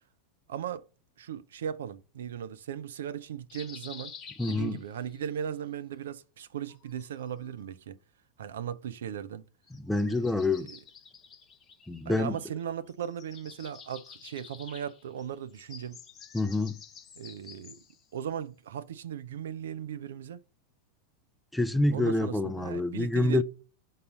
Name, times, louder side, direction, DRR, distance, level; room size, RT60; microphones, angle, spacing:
voice 1, 0.5-0.8 1.2-4.1 4.5-8.0 8.4-9.4 10.0-10.6 12.1-16.0 17.2-17.8 18.1-20.4 21.9-23.4, right 9 dB, 60° right, 0.5 m, -37 dB
sound 1, 3.5-5.2 6.6-7.7 9.6-12.6 12.9-18.1, left 6 dB, 25° left, 0.9 m, -50 dB
voice 2, 4.4-4.8 9.7-10.7 11.9-12.4 16.3-16.8 21.5-23.4, left 2 dB, 5° left, 0.4 m, -27 dB
5.4 x 4.0 x 5.0 m
figure-of-eight pair, 90°, 0 cm